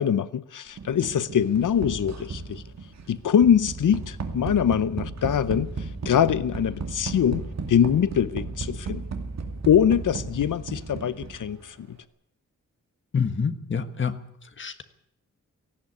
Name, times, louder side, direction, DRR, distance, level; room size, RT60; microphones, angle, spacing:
voice 1, 0.0-2.6 3.1-9.0 9.7-12.0, left 8 dB, 80° left, 0.8 m, -23 dB
sound 1, 0.8-11.6, right 4 dB, 60° right, 2.3 m, -35 dB
voice 2, 13.1-14.1 14.6-14.8, left 6 dB, 40° left, 1.5 m, -27 dB
18.0 x 16.0 x 9.5 m
wide cardioid pair, 175°, 31 cm